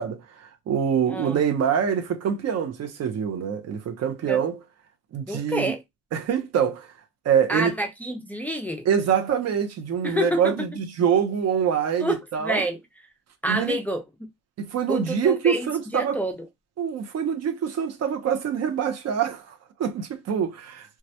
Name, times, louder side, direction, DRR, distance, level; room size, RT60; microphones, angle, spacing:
voice 1, 0.0-4.6 5.1-5.7 6.1-6.9 7.2-7.7 8.9-12.6 13.5-13.8 14.6-16.2 16.8-21.0, right 8 dB, 55° right, 0.6 m, -25 dB
voice 2, 1.1-1.4 4.3-4.4 5.3-5.8 7.5-8.9 10.0-10.7 12.0-12.8 13.4-14.0 14.9-16.5, equal, 5° left, 0.4 m, -28 dB
2.2 x 2.0 x 2.7 m
cardioid pair, 90°, 30 cm